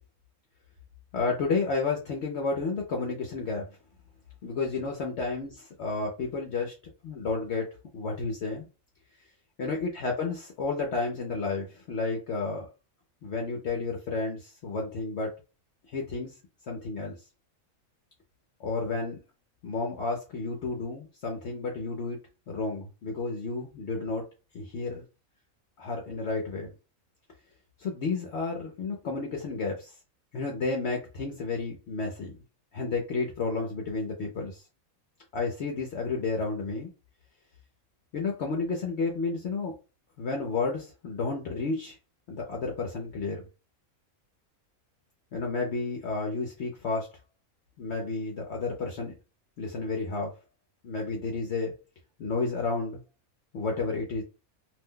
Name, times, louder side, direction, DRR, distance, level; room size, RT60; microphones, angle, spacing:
voice 1, 1.1-3.7 4.4-6.7 7.0-7.7 7.9-8.7 9.6-12.7 13.2-15.3 15.9-16.3 16.7-17.2 18.6-19.2 19.6-22.2 22.5-24.2 24.5-25.0 25.8-26.7 27.8-29.9 30.3-32.3 32.7-34.6 35.3-36.9 38.1-39.7 40.2-42.0 42.3-43.4 45.3-47.1 47.8-49.1 49.6-50.3 50.8-51.7 52.2-53.0 53.5-54.2, left 3 dB, 60° left, 0 dB, 0.8 m, -31 dB
2.7 x 2.1 x 3.6 m, 0.31 s
omnidirectional pair, 1.5 m